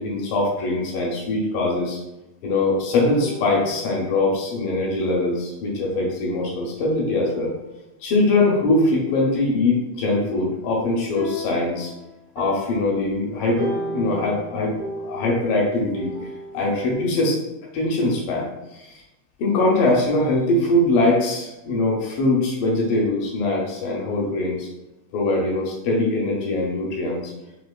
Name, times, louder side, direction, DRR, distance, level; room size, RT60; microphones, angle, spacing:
voice 1, 0.0-2.0 2.4-7.5 8.0-11.9 12.4-16.1 16.5-17.4 17.7-19.0 19.4-24.7 25.1-27.3, left 2 dB, 75° left, -2 dB, 2.1 m, -22 dB
sound 1, 3.2-5.0 5.9-6.2 7.3-8.1 8.7-9.9 11.2-16.9, right 1 dB, 90° right, 2.9 m, -36 dB
6.5 x 2.9 x 2.2 m, 0.97 s
omnidirectional pair, 4.5 m